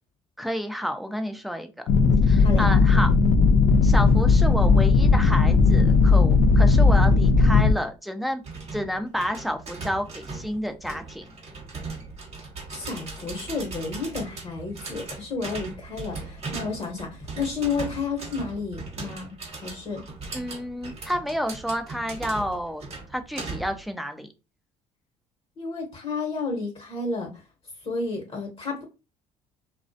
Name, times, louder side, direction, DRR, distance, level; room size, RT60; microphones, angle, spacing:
voice 1, 0.4-1.7 2.3-3.1 3.8-8.4 8.7-11.3 20.3-22.8 23.1-24.3, equal, ahead, 7 dB, 0.5 m, -30 dB
sound 1, 1.9-7.7, left 4 dB, 60° left, 0.4 m, -17 dB
sound 2, 8.4-23.9, right 3 dB, 45° right, 1.0 m, -39 dB
voice 2, 12.7-19.3 19.6-20.0 25.6-27.4 27.8-28.8, left 4 dB, 40° left, 1 dB, 1.0 m, -31 dB
2.3 x 2.1 x 2.6 m, 0.28 s
hypercardioid pair, 65°, 15 cm